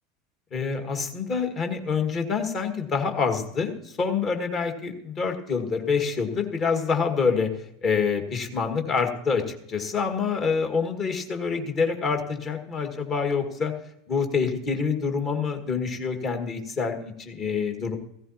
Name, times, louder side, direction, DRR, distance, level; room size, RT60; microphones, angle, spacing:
voice 1, 0.5-7.5 7.8-13.7 14.1-18.0, left 5 dB, 35° left, 5 dB, 1.9 m, -26 dB
16.0 x 15.5 x 2.9 m, 0.75 s
figure-of-eight pair, 75°, 0 cm